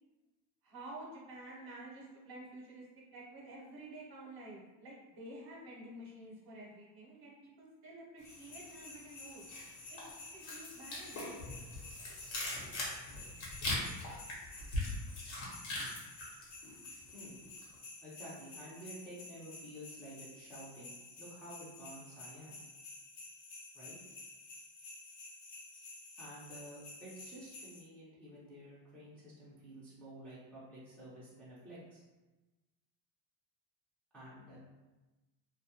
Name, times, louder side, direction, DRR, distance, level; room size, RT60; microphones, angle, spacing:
voice 1, 0.6-2.8 3.1-9.4 9.9-10.0 10.3-11.2, right 1 dB, 50° right, -3 dB, 0.8 m, -50 dB
sound 1, 8.2-27.8, left 3 dB, 90° left, 0.8 m, -52 dB
sound 2, 8.3-8.9 9.2-17.1 17.4-17.7, left 2 dB, 70° left, 1.1 m, -41 dB
voice 2, 18.0-22.6 23.7-24.0 26.2-32.0 34.1-34.6, right 1 dB, 5° left, -10 dB, 0.5 m, -51 dB
2.3 x 2.1 x 2.8 m, 1.1 s
cardioid pair, 130°, 49 cm